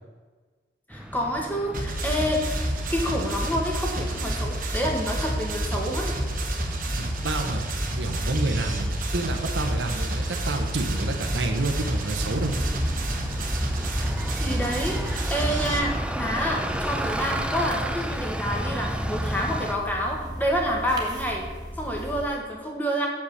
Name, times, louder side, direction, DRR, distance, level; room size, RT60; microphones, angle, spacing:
voice 1, 0.9-2.6 2.9-6.1 14.2-21.5 21.8-23.1, equal, 10° left, 0 dB, 1.3 m, -28 dB
Bus, 0.9-19.7, right 1 dB, 5° right, 0.4 m, -34 dB
sound 1, 1.7-15.8, right 1 dB, 50° right, 1.0 m, -29 dB
voice 2, 7.0-12.5, right 2 dB, 80° right, 5 dB, 0.9 m, -29 dB
sound 2, 12.3-22.3, equal, 25° right, 1.2 m, -36 dB
6.9 x 5.3 x 6.5 m, 1.4 s
head